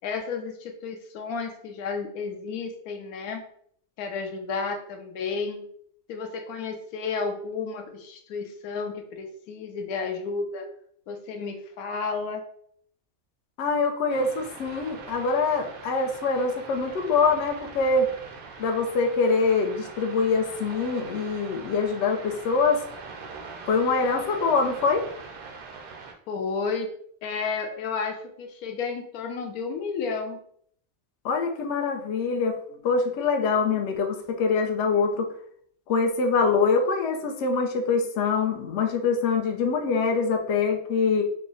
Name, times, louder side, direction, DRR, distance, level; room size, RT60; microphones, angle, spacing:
voice 1, 0.0-3.4 4.0-5.7 6.1-10.7 11.1-12.4 26.3-26.9 27.2-30.4, left 4 dB, 85° left, 5 dB, 1.1 m, -32 dB
voice 2, 13.6-18.1 18.6-22.8 23.7-25.0 31.2-32.6 32.8-35.3 35.9-41.2, left 4 dB, 65° left, 4 dB, 0.8 m, -24 dB
sound 1, 14.1-26.1, right 4 dB, 65° right, 0.5 m, -42 dB
3.4 x 2.0 x 3.8 m, 0.64 s
omnidirectional pair, 1.5 m